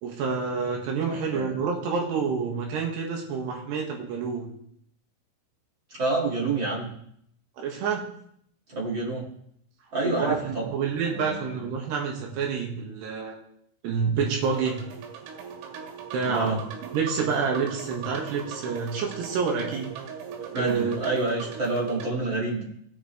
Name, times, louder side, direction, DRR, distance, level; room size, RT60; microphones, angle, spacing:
voice 1, 0.0-4.5 7.6-8.0 10.0-13.4 13.8-14.8 16.1-19.9 20.6-21.0, right 5 dB, 65° right, 0 dB, 3.4 m, -28 dB
voice 2, 1.1-1.5 5.9-6.9 8.7-9.2 9.9-10.7 11.1-11.6 16.2-16.6 20.5-22.6, right 3 dB, 45° right, -4 dB, 1.5 m, -28 dB
sound 1, 14.4-22.1, right 6 dB, 80° right, 4.4 m, -39 dB
18.0 x 9.7 x 3.3 m, 0.69 s
omnidirectional pair, 5.9 m